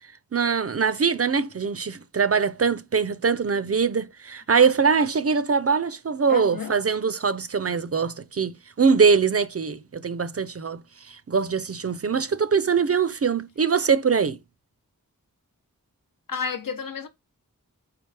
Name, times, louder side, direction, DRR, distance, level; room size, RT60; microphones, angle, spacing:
voice 1, 0.3-8.5 8.8-10.8 11.1-14.4, right 5 dB, 45° right, 0.4 m, -22 dB
voice 2, 6.3-6.7 16.3-17.1, left 6 dB, 70° left, 0.8 m, -31 dB
4.7 x 3.2 x 3.3 m
wide cardioid pair, 40°, 35 cm